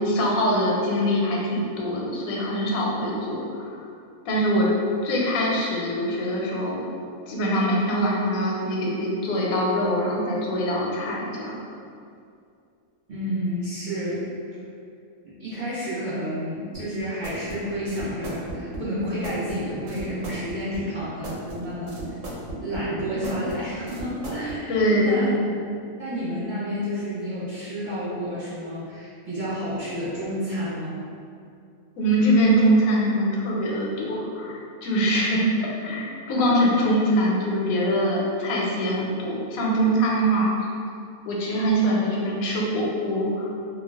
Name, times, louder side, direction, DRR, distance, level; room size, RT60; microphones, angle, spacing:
voice 1, 0.1-3.8 4.3-4.7 5.0-6.8 7.3-11.5 24.7-25.3 32.0-35.4 35.8-40.5 41.3-43.5, equal, 85° left, -3 dB, 1.0 m, -23 dB
voice 2, 13.1-14.2 15.2-22.2 22.6-24.7 25.0-25.4 26.0-31.0, equal, 40° right, -11 dB, 0.8 m, -30 dB
sound 1, 16.7-24.6, right 1 dB, 70° right, 0.9 m, -36 dB
2.4 x 2.3 x 3.3 m, 2.4 s
omnidirectional pair, 1.4 m